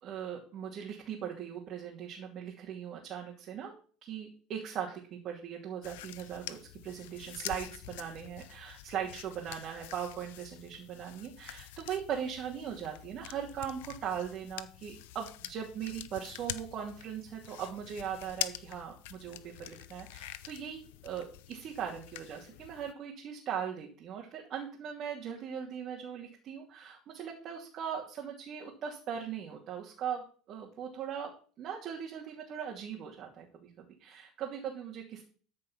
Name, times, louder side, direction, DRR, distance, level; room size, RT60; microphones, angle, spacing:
voice 1, 0.0-3.7 4.0-31.3 31.6-33.7 34.0-35.2, right 8 dB, 50° right, -1 dB, 2.7 m, -39 dB
sound 1, 5.8-22.9, left 15 dB, 85° left, 0.7 m, -46 dB
13.5 x 5.3 x 5.9 m, 0.42 s
supercardioid pair, 100°, 0 cm